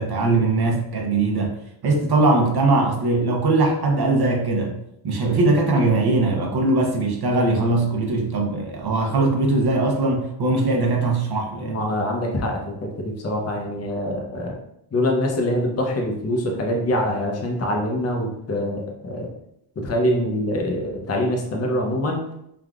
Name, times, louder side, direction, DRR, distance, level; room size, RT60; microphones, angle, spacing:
voice 1, 0.0-1.6 1.8-4.8 5.0-11.8, right 2 dB, 50° right, 1 dB, 0.7 m, -20 dB
voice 2, 11.6-14.5 14.9-19.3 19.8-22.2, left 1 dB, 30° left, 0 dB, 0.6 m, -24 dB
3.4 x 2.3 x 2.3 m, 0.77 s
wide cardioid pair, 120°, 49 cm